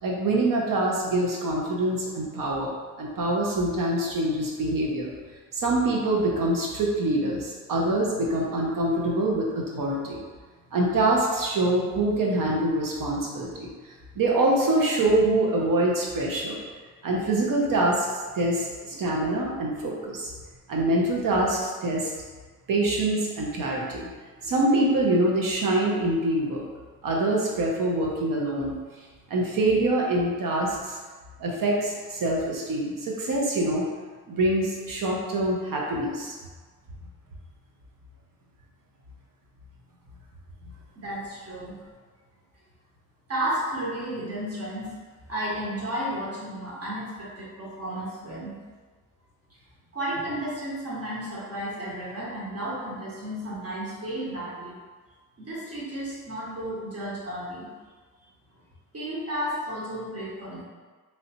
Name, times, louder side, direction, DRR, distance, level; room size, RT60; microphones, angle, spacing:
voice 1, 0.0-2.7 3.0-5.1 5.5-10.2 10.7-13.7 14.2-16.6 17.0-18.1 18.3-20.3 20.7-22.1 22.7-24.1 24.4-26.6 27.0-28.7 29.3-31.0 31.4-33.9 34.3-36.4, right 1 dB, 65° right, -2 dB, 0.9 m, -25 dB
voice 2, 40.7-41.8 43.3-44.9 45.3-48.6 49.9-54.8 55.4-57.7 58.9-60.6, right 1 dB, 45° right, -7 dB, 1.4 m, -33 dB
3.2 x 2.9 x 2.7 m, 1.4 s
cardioid pair, 65°, 36 cm